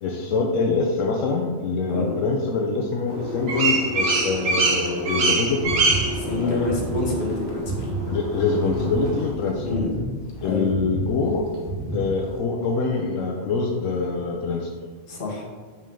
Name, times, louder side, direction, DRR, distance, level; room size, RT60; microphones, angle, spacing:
voice 1, 0.0-5.8 6.2-6.7 8.1-9.8 10.4-11.4 11.9-14.7, left 4 dB, 75° left, 1 dB, 1.0 m, -25 dB
sound 1, 3.1-9.3, right 3 dB, 80° right, 1.4 m, -25 dB
sound 2, 5.6-12.4, right 2 dB, 35° right, 1.8 m, -32 dB
voice 2, 6.1-7.9 9.6-9.9 10.4-10.7 15.1-15.5, left 3 dB, 45° left, -2 dB, 1.3 m, -27 dB
5.4 x 5.2 x 3.7 m, 1.5 s
omnidirectional pair, 1.3 m